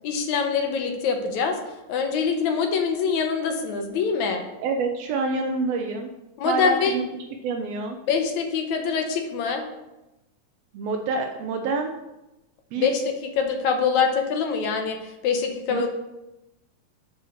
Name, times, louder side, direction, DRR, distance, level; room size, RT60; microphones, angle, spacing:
voice 1, 0.0-1.6 1.9-4.4 6.4-7.0 8.1-9.7 12.8-15.0 15.2-15.9, left 6 dB, 70° left, 4 dB, 2.1 m, -24 dB
voice 2, 4.6-6.1 6.4-8.0 10.7-11.9 12.7-12.9 15.7-15.9, right 3 dB, 85° right, 3 dB, 1.4 m, -27 dB
9.2 x 4.4 x 6.4 m, 0.96 s
omnidirectional pair, 3.7 m